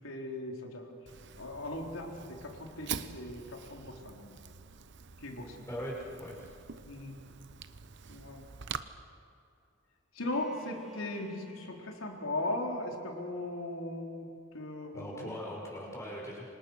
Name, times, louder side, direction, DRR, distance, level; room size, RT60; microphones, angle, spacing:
voice 1, 0.0-0.9 1.4-4.4 5.2-5.6 6.8-7.2 8.1-8.5 10.1-14.3 14.5-15.3 15.8-15.9, left 2 dB, 80° left, 1 dB, 4.0 m, -38 dB
Fire, 1.1-8.8, right 7 dB, 60° right, 0.9 m, -45 dB
voice 2, 5.7-6.5 14.9-16.5, equal, 15° left, -3 dB, 6.5 m, -40 dB
Bowed string instrument, 10.2-14.1, right 1 dB, ahead, 2.4 m, -55 dB
28.0 x 26.0 x 6.5 m, 2.5 s
head